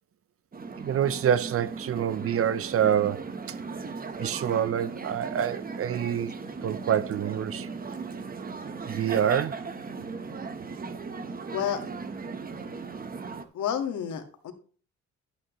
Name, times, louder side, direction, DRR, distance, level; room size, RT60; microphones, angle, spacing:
sound 1, 0.5-13.4, right 4 dB, 30° right, 1.0 m, -37 dB
voice 1, 0.8-3.2 4.2-6.3 6.6-7.7 8.9-9.6, right 9 dB, 50° right, 0.6 m, -26 dB
voice 2, 13.5-14.5, left 9 dB, 75° left, 1.7 m, -30 dB
11.5 x 8.4 x 3.1 m
cardioid pair, 90°, 30 cm